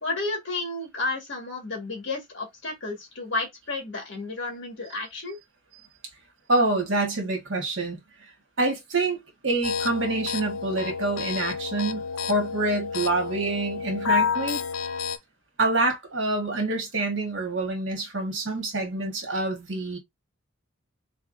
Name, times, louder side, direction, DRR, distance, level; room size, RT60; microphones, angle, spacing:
voice 1, 0.0-5.4, left 3 dB, 60° left, 1.9 m, -32 dB
voice 2, 6.5-8.0 8.6-9.2 9.4-14.6 15.6-20.0, right 2 dB, 65° right, 1.6 m, -26 dB
sound 1, 9.6-15.2, left 6 dB, 80° left, 0.6 m, -30 dB
4.0 x 3.4 x 2.7 m
head